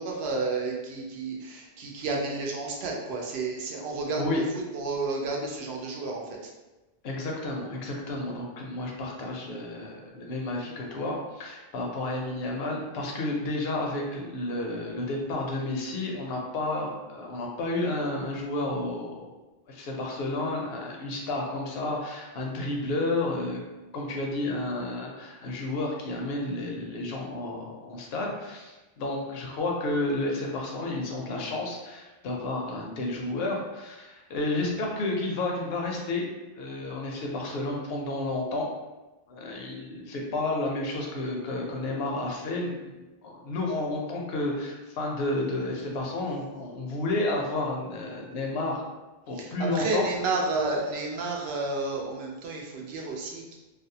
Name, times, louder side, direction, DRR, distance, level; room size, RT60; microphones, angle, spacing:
voice 1, 0.0-4.4 4.7-6.4 45.8-46.1 49.4-53.6, right 3 dB, 80° right, 0 dB, 0.8 m, -31 dB
voice 2, 4.1-4.5 7.0-19.3 19.7-23.6 23.9-36.3 36.6-38.7 39.3-42.9 43.2-48.9 49.3-50.1, left 2 dB, 75° left, 0 dB, 0.8 m, -31 dB
2.6 x 2.0 x 2.7 m, 1.1 s
omnidirectional pair, 1.0 m